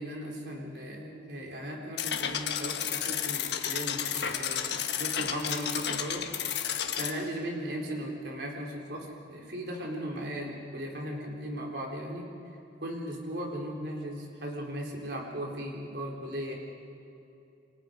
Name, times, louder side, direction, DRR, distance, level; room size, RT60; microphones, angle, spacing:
voice 1, 0.0-6.2 6.9-12.3 12.8-16.5, equal, 60° right, -1 dB, 4.0 m, -37 dB
sound 1, 2.0-7.1, left 8 dB, 60° left, 1.4 m, -32 dB
27.5 x 26.0 x 5.3 m, 2.7 s
head